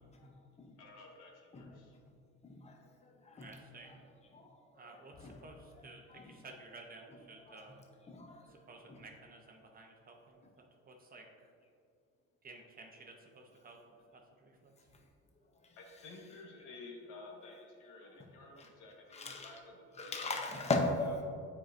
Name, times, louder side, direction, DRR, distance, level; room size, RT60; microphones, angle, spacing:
voice 1, 0.1-0.7 1.5-1.8 2.4-6.6 7.1-7.7 8.0-9.0 15.5-16.5 17.4-17.6 18.1-18.3 18.6-18.7 19.1-19.6 19.9-20.9, left 3 dB, 20° left, 2 dB, 0.8 m, -41 dB
voice 2, 0.8-2.0 15.7-20.2, left 3 dB, 80° left, 0 dB, 1.3 m, -53 dB
voice 3, 3.4-4.0 4.7-7.9 8.5-11.5 12.4-14.7, right 3 dB, 30° right, 2 dB, 0.8 m, -54 dB
8.7 x 4.7 x 2.6 m, 2.3 s
cardioid pair, 125°, 31 cm